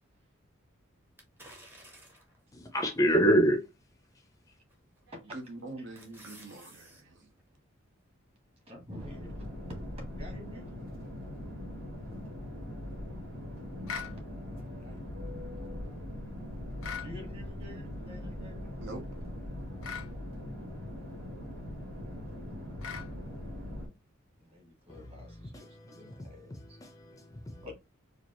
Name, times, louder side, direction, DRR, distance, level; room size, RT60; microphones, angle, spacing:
sound 1, 1.2-2.4 3.0-3.1 4.7-5.0 5.5-7.0 7.4-7.5, right 1 dB, 10° right, 0.8 m, -53 dB
voice 1, 2.5-3.7 4.1-4.6 24.9-27.7, right 1 dB, 15° left, 0.6 m, -29 dB
voice 2, 5.1-7.3 18.8-19.1, right 2 dB, 60° right, 0.9 m, -44 dB
voice 3, 8.7-9.4 10.1-10.8 14.8-15.1 17.0-18.8 24.4-26.8 27.6-27.7, left 1 dB, 30° right, 1.6 m, -49 dB
sound 2, 9.0-23.9, left 1 dB, 80° right, 2.0 m, -41 dB
sound 3, 13.9-14.2 16.8-17.1 19.8-20.1 22.8-23.1, left 7 dB, 80° left, 0.7 m, -38 dB
4.4 x 2.4 x 3.0 m
head